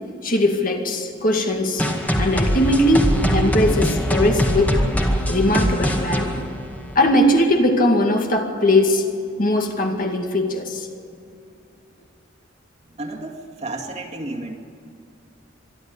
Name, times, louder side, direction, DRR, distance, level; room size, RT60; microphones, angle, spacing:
voice 1, 0.2-1.8 2.2-4.8 5.3-6.3 7.0-9.0 9.4-10.9, left 1 dB, 45° left, 3 dB, 2.2 m, -19 dB
sound 1, 1.8-7.2, equal, 10° left, 2.0 m, -22 dB
voice 2, 12.8-14.6, right 2 dB, 35° right, 3 dB, 2.3 m, -32 dB
25.5 x 12.0 x 8.6 m, 2.5 s
head